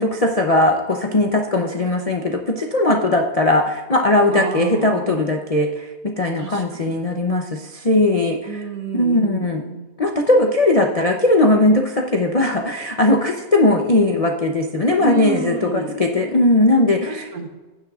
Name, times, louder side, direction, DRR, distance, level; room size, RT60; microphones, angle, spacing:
voice 1, 0.0-8.6 8.9-9.6 10.0-17.3, left 2 dB, 65° left, 2 dB, 0.3 m, -18 dB
voice 2, 4.3-5.2 6.4-7.0 8.5-10.0 15.0-16.0 17.1-17.5, right 4 dB, 80° right, 4 dB, 1.6 m, -29 dB
16.0 x 7.5 x 2.4 m, 1.2 s
omnidirectional pair, 1.8 m